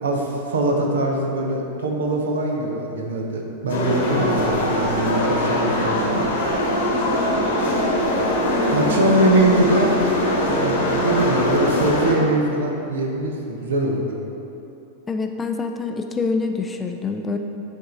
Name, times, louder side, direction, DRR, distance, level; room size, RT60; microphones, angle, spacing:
voice 1, 0.0-6.2 8.7-14.1, right 1 dB, 65° right, 1 dB, 0.8 m, -22 dB
sound 1, 3.7-12.1, left 1 dB, 60° left, 1.1 m, -22 dB
voice 2, 6.9-7.5 8.8-9.0 15.1-17.4, left 4 dB, 15° left, 5 dB, 0.4 m, -26 dB
8.9 x 3.6 x 3.9 m, 2.9 s
figure-of-eight pair, 90°, 0 cm